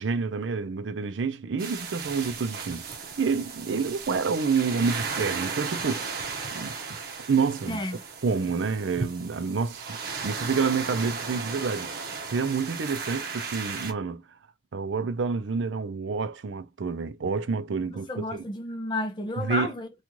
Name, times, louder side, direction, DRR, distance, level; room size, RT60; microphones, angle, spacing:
voice 1, 0.0-2.9 3.2-6.1 6.5-7.0 7.3-7.8 8.2-10.0 10.2-11.9 12.3-14.2 14.7-18.4 19.4-19.7, right 5 dB, 85° right, 0.5 m, -28 dB
sound 1, 1.6-13.9, right 5 dB, 50° right, 0.8 m, -35 dB
voice 2, 7.7-8.0 18.1-20.0, left 2 dB, 25° left, 0.6 m, -31 dB
3.0 x 2.4 x 3.7 m
head